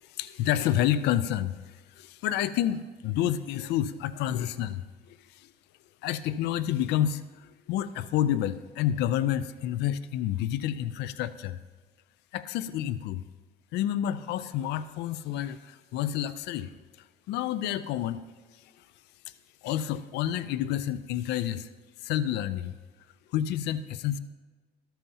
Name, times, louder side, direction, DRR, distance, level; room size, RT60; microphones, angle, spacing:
voice 1, 0.0-5.5 6.0-11.6 12.3-13.2 13.7-16.7 17.3-18.2 18.5-18.9 19.6-21.7 22.0-22.8 23.3-24.2, left 11 dB, 85° left, 14 dB, 0.4 m, -29 dB
13.5 x 12.0 x 2.8 m, 1.3 s
cardioid pair, 110°, 17 cm